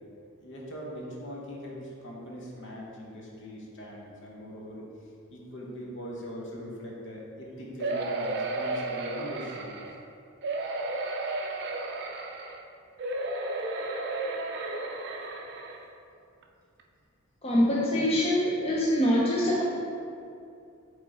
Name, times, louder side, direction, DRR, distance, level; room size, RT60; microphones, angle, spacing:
voice 1, 0.4-4.9 5.3-9.8, equal, 60° left, -3 dB, 1.1 m, -41 dB
sound 1, 7.8-10.0 10.4-12.6 13.0-15.8 16.4-16.5 16.8-16.9, right 2 dB, 55° right, 0.5 m, -33 dB
voice 2, 17.4-19.6, left 1 dB, 30° left, -5 dB, 0.6 m, -24 dB
6.6 x 3.7 x 4.0 m, 2.5 s
head